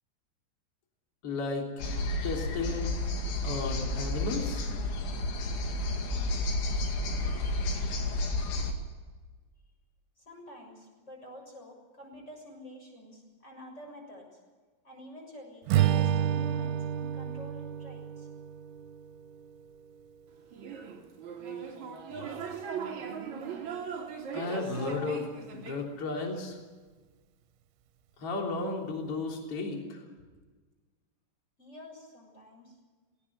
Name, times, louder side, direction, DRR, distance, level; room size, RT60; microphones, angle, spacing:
voice 1, 1.2-1.7 2.2-2.9 3.4-4.7 24.3-26.6 28.2-30.0, left 3 dB, 35° left, 1 dB, 3.8 m, -34 dB
sound 1, 1.8-8.7, left 2 dB, 75° left, 4.6 m, -31 dB
voice 2, 10.2-14.4 14.8-18.3 31.6-32.8, left 1 dB, 15° left, 1 dB, 6.6 m, -49 dB
Strum, 15.7-20.1, right 10 dB, 85° right, 3.4 m, -30 dB
sound 2, 20.5-25.8, right 6 dB, 45° right, 3.3 m, -39 dB
19.5 x 17.5 x 9.3 m, 1.4 s
omnidirectional pair, 5.3 m